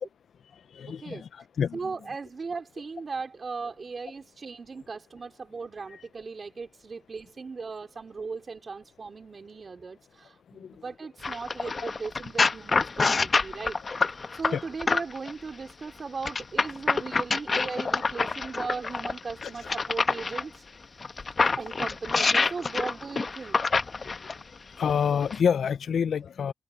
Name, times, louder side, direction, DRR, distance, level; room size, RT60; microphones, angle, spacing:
voice 1, 0.7-1.9 5.9-6.0 10.5-10.7 13.3-13.4 14.5-14.6 17.7-17.8 19.4-19.5 24.1-24.2 24.8-26.5, left 7 dB, 80° left, 0.5 m, -28 dB
voice 2, 1.7-13.8 14.3-20.5 21.6-23.6, right 4 dB, 50° right, 3.8 m, -37 dB
sound 1, 11.2-15.3 16.2-20.4 21.0-24.4 25.2-25.4, left 4 dB, 45° left, 1.0 m, -26 dB
cardioid pair, 85°, 0 cm